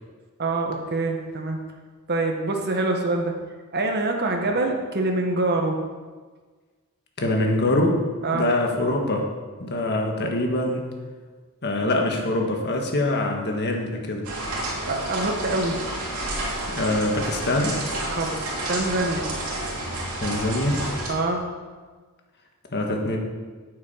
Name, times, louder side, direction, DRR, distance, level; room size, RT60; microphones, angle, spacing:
voice 1, 0.4-1.6 2.1-3.3 3.7-5.8 8.2-8.5 14.8-15.8 18.1-18.4 18.7-19.3 21.1-21.5, right 2 dB, 50° right, 2 dB, 1.4 m, -25 dB
voice 2, 7.2-8.0 8.3-9.3 9.6-10.8 11.6-14.3 16.7-17.8 20.2-20.8 22.7-23.2, left 1 dB, 50° left, 1 dB, 1.6 m, -24 dB
sound 1, 14.2-21.1, right 1 dB, 90° right, 2.8 m, -30 dB
8.6 x 8.5 x 5.7 m, 1.4 s
head